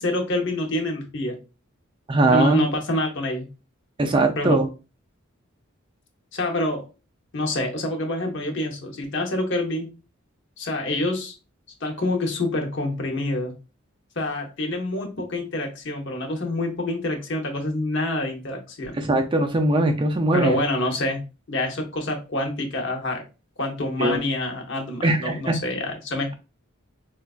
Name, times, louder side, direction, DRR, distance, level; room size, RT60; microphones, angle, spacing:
voice 1, 0.0-1.4 2.3-3.5 4.4-4.6 6.3-6.8 7.3-9.9 10.6-11.3 11.8-13.5 14.2-19.0 20.3-21.2 21.5-23.2 23.6-26.3, left 1 dB, 60° left, 3 dB, 0.8 m, -26 dB
voice 2, 2.1-2.6 4.0-4.7 19.0-20.6 24.0-24.2 25.0-25.6, right 2 dB, 25° right, 5 dB, 0.4 m, -20 dB
4.3 x 2.3 x 2.4 m, 0.31 s
head